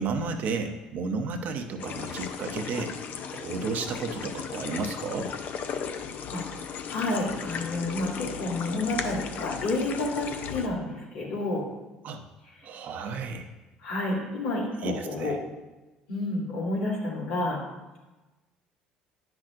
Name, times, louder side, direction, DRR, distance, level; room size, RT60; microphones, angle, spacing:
voice 1, 0.0-2.9 3.3-5.3 12.0-12.2 12.6-13.5 14.8-15.4, right 4 dB, 60° right, 4 dB, 0.9 m, -32 dB
sound 1, 1.8-10.7, left 7 dB, 60° left, 0.6 m, -36 dB
voice 2, 6.9-11.7 13.8-15.4 16.1-17.6, left 2 dB, 85° left, -6 dB, 2.4 m, -30 dB
9.7 x 5.9 x 2.6 m, 1.1 s
hypercardioid pair, 70°, 3 cm